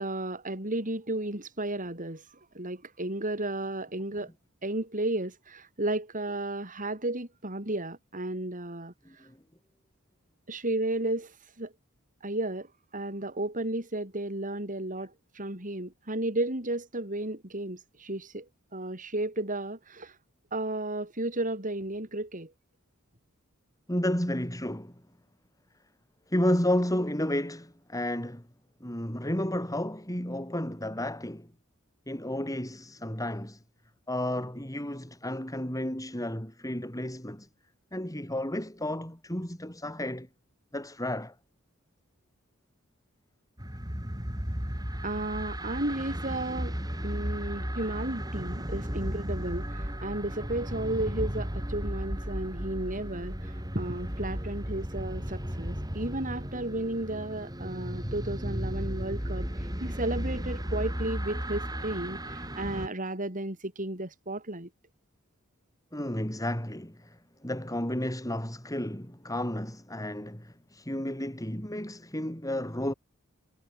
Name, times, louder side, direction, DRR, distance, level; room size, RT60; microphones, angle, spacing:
voice 1, 0.0-4.3 4.6-9.3 10.5-11.7 12.2-20.2 20.5-22.5 45.0-46.8 47.0-64.7, right 1 dB, 40° right, 6.3 m, -33 dB
voice 2, 9.1-9.4 23.9-24.9 26.3-28.4 28.8-31.5 32.1-33.6 34.1-37.5 37.9-40.3 40.7-41.3 65.9-67.2 67.4-72.9, left 1 dB, 15° left, 7.3 m, -32 dB
sound 1, 43.6-62.9, equal, 20° right, 7.2 m, -35 dB
head